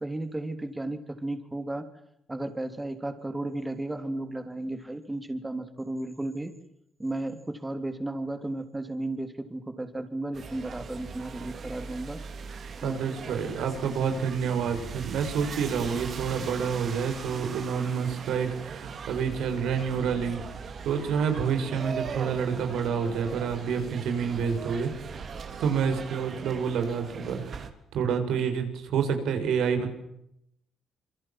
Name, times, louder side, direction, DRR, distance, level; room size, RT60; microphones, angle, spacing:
voice 1, 0.0-1.9 2.3-6.6 7.0-12.2 12.8-13.4, right 2 dB, 15° right, 8 dB, 3.3 m, -34 dB
sound 1, 10.3-27.7, right 5 dB, 50° right, 3.8 m, -40 dB
voice 2, 12.8-20.4 20.8-24.9 25.6-27.7 27.9-29.9, right 6 dB, 80° right, 7 dB, 6.7 m, -28 dB
27.0 x 24.5 x 7.6 m, 0.79 s
cardioid pair, 90°, 0 cm